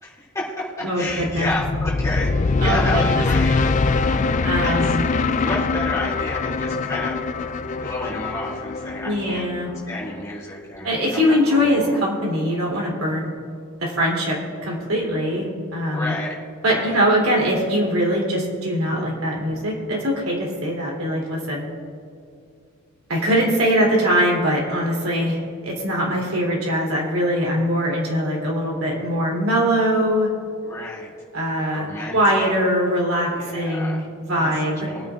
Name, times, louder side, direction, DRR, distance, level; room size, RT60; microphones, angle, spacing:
voice 1, 0.0-3.6 4.6-4.9 5.4-7.2 7.7-9.4 9.9-12.0 15.9-16.4 16.7-17.0 30.6-31.1 31.7-32.5 33.3-34.0 34.4-34.5 34.8-35.1, left 1 dB, 15° left, -7 dB, 2.7 m, -30 dB
voice 2, 0.8-1.5 2.6-3.2 4.4-5.0 9.0-9.7 10.8-13.3 13.8-16.1 16.6-21.6 23.1-30.3 31.3-31.9 32.1-34.9, equal, 80° right, -3 dB, 3.3 m, -22 dB
sound 1, 1.1-10.2, left 4 dB, 35° left, 0.3 m, -23 dB
22.5 x 9.1 x 2.5 m, 2.4 s
head